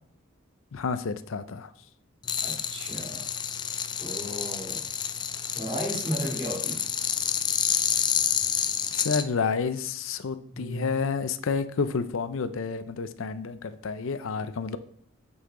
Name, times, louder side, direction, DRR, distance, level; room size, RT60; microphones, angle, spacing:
voice 1, 0.7-1.7 8.9-14.8, left 5 dB, 75° left, 12 dB, 0.5 m, -30 dB
sound 1, 2.2-9.2, left 8 dB, 20° left, 0.3 m, -29 dB
voice 2, 2.4-3.3 4.0-4.9 5.5-6.8 10.5-11.0, equal, 25° right, -3 dB, 2.7 m, -34 dB
8.4 x 5.6 x 3.7 m, 0.65 s
head